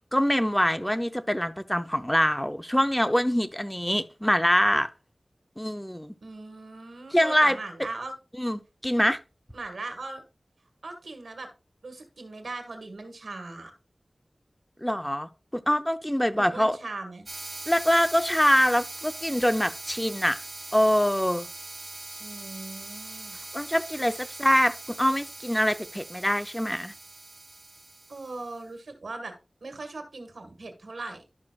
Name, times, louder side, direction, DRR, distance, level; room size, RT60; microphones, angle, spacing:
voice 1, 0.1-4.9 5.6-6.1 7.1-7.6 8.4-9.2 14.8-16.8 17.7-20.4 20.7-21.5 23.5-26.9, equal, 10° left, 0.6 m, -24 dB
voice 2, 6.2-8.1 9.5-10.2 10.8-11.5 11.8-13.7 16.4-17.3 22.2-23.4 28.1-29.3 29.6-31.2, right 3 dB, 90° right, 1.7 m, -39 dB
sound 1, 17.3-28.5, right 2 dB, 60° right, 1.8 m, -41 dB
12.0 x 6.1 x 2.4 m
cardioid pair, 45°, 0 cm